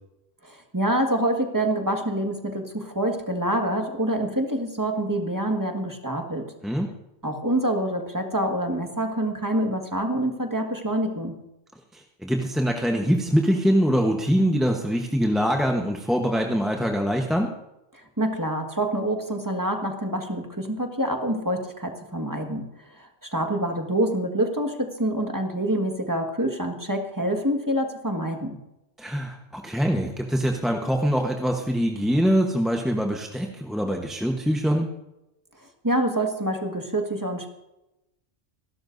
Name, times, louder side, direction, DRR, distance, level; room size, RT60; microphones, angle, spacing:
voice 1, 0.4-6.4 7.2-11.3 17.9-22.6 23.0-28.6 35.8-37.5, right 1 dB, 15° right, 2 dB, 1.7 m, -26 dB
voice 2, 11.9-17.5 29.0-34.9, equal, ahead, 1 dB, 0.9 m, -23 dB
25.5 x 12.5 x 2.7 m, 0.90 s
omnidirectional pair, 1.2 m